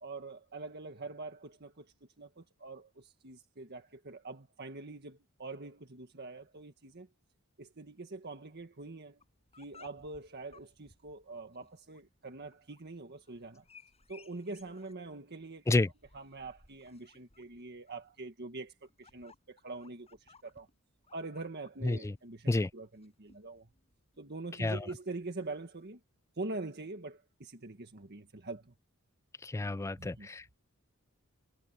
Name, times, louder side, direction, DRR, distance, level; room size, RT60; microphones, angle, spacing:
voice 1, 0.0-7.1 7.6-9.2 9.6-13.7 14.1-15.8 16.1-20.7 21.1-23.7 24.2-26.0 26.3-28.7 30.0-30.3, right 3 dB, 50° right, 1.7 m, -44 dB
sound 1, 9.2-25.8, left 4 dB, 30° left, 7.0 m, -62 dB
voice 2, 29.4-30.6, left 2 dB, 15° left, 0.3 m, -30 dB
head